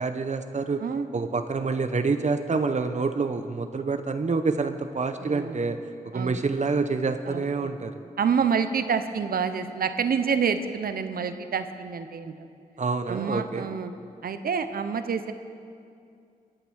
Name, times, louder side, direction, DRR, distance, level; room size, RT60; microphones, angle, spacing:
voice 1, 0.0-0.8 1.1-8.0 12.8-13.8, right 4 dB, 50° right, 8 dB, 0.9 m, -27 dB
voice 2, 5.2-5.6 6.1-6.4 7.3-7.7 8.2-12.3 13.1-13.9 14.2-15.3, right 6 dB, 75° right, 10 dB, 0.9 m, -27 dB
22.5 x 7.9 x 6.4 m, 2.4 s
cardioid pair, 60°, 15 cm